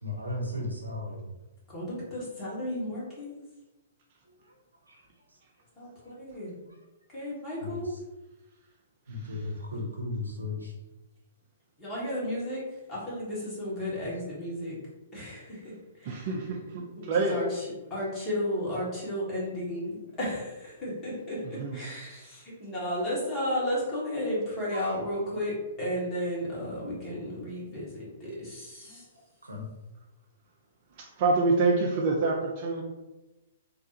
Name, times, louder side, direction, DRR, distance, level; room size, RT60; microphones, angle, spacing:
voice 1, 0.0-1.3 4.3-4.6 4.9-5.0 6.1-6.2 6.7-6.8 7.6-8.0 9.1-10.7 24.7-25.0 26.7-26.9 28.8-29.0 29.4-29.7, left 2 dB, 85° right, -1 dB, 0.7 m, -36 dB
voice 2, 1.7-3.4 5.8-6.6 7.1-7.9 11.8-12.6 12.9-14.8 15.1-15.7 16.0-16.2 17.0-17.5 17.9-29.0, left 1 dB, 20° left, -7 dB, 1.4 m, -33 dB
voice 3, 9.1-9.5 16.0-17.4 21.4-21.9 30.9-32.8, right 3 dB, 40° right, -1 dB, 0.4 m, -27 dB
3.2 x 2.3 x 2.8 m, 1.1 s
figure-of-eight pair, 115°, 0 cm